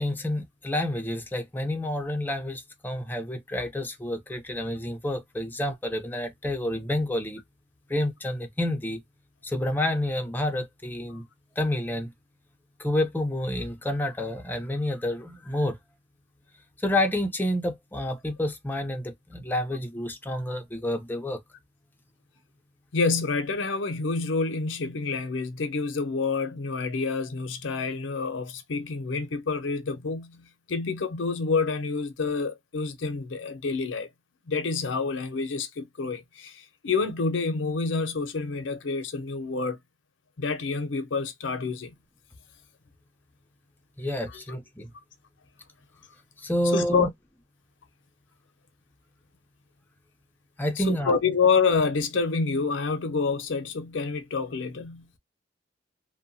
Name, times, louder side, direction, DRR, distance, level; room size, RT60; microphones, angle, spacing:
voice 1, 0.0-7.4 7.9-9.0 9.4-11.2 11.6-12.1 12.8-15.8 16.8-21.4 44.0-44.9 46.4-47.1 50.6-51.2, left 1 dB, 10° left, 0.5 m, -29 dB
voice 2, 22.9-34.1 34.5-39.8 40.4-41.9 44.3-44.4 46.7-47.1 50.8-55.1, left 4 dB, 75° left, 0.6 m, -28 dB
2.7 x 2.2 x 2.6 m
head